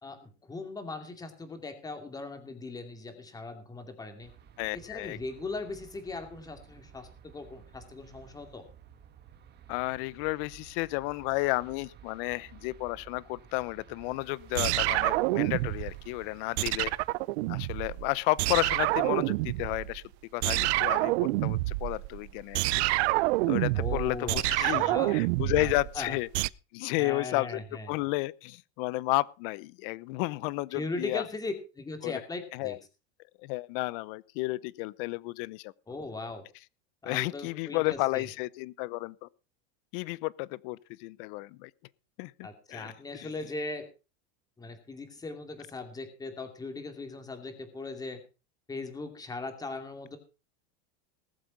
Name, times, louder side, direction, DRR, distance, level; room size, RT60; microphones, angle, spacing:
voice 1, 0.0-4.3 4.7-8.6 23.8-25.2 25.5-26.2 27.0-27.9 30.7-32.8 35.9-36.4 37.0-38.3 42.4-43.9 44.6-48.2 48.7-50.2, left 3 dB, 10° left, 2.5 m, -39 dB
sound 1, 4.2-17.1, right 8 dB, 30° right, 2.0 m, -54 dB
voice 2, 4.6-5.2 9.7-16.9 17.5-20.0 20.3-22.8 23.5-26.3 26.7-27.6 27.9-31.2 32.0-32.1 32.5-32.8 33.4-35.7 37.0-39.3 39.9-41.7 42.2-42.9 43.2-43.3, left 21 dB, 50° left, 0.7 m, -32 dB
sound 2, 14.5-16.1 16.6-18.1 18.4-20.0 20.4-26.5, right 21 dB, 65° right, 0.6 m, -28 dB
19.5 x 7.7 x 5.2 m
supercardioid pair, 155°, 34 cm